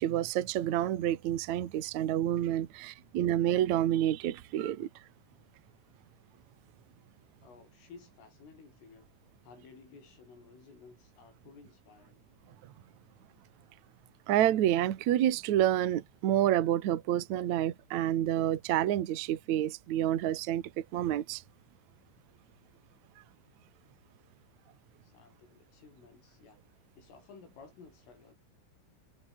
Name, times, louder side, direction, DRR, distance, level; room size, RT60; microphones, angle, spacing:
voice 1, 0.0-4.9 14.3-21.4, right 12 dB, 85° right, 1.6 m, -28 dB
voice 2, 7.4-9.1 9.4-12.2 25.0-26.6 26.9-28.4, left 5 dB, 75° left, 10.0 m, -55 dB
omnidirectional pair, 5.9 m